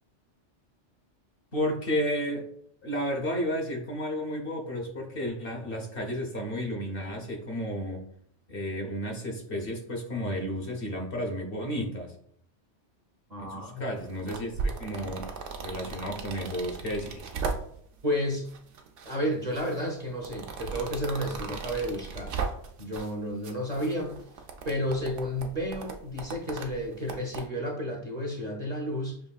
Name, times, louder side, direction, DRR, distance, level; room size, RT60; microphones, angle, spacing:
voice 1, 1.5-2.5 2.8-8.0 8.5-12.1 13.4-15.3 15.6-17.2, equal, 50° left, 0 dB, 1.0 m, -32 dB
voice 2, 13.3-13.9 18.0-18.5 19.0-22.3 22.8-24.2 24.6-29.2, equal, 40° right, 0 dB, 0.8 m, -31 dB
sound 1, 14.0-18.0 18.5-19.2 19.5-23.1 23.4-27.4, right 4 dB, 75° right, 1.0 m, -37 dB
6.1 x 3.2 x 2.3 m, 0.65 s
omnidirectional pair, 1.2 m